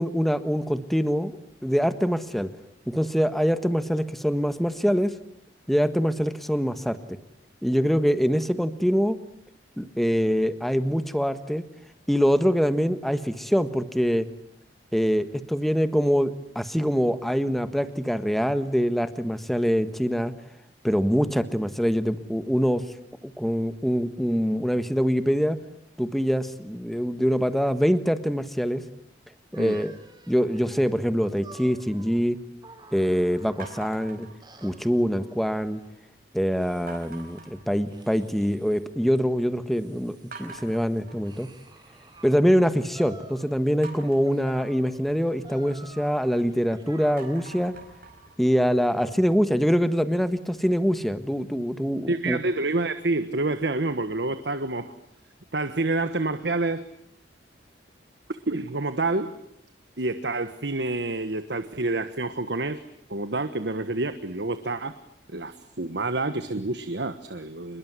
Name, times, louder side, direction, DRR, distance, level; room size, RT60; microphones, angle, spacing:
voice 1, 0.0-1.4 1.6-2.5 2.9-5.1 5.7-7.0 7.6-9.2 9.8-11.6 12.1-14.3 14.9-20.3 20.8-22.8 23.2-25.6 26.0-28.8 29.5-29.9 30.3-32.4 32.9-34.3 34.6-35.8 36.3-41.5 42.2-47.7 48.4-52.4, equal, ahead, 10 dB, 1.5 m, -24 dB
sound 1, 29.5-34.0 34.4-35.9 36.6-37.5 37.9-38.9 39.5-42.3 42.9-43.9 44.2-47.7, right 2 dB, 25° right, 3.7 m, -50 dB
sound 2, 33.6-35.1 35.5-36.0 36.9-38.4 38.7-39.3 39.7-39.8 40.3-42.4 43.8-46.6 47.0-49.9, right 3 dB, 55° right, 5.3 m, -47 dB
voice 2, 52.1-54.9 55.5-56.9 58.5-59.3 60.0-62.8 63.1-64.9 65.3-67.8, right 2 dB, 70° right, 10 dB, 1.4 m, -28 dB
27.0 x 22.0 x 9.7 m, 0.74 s
head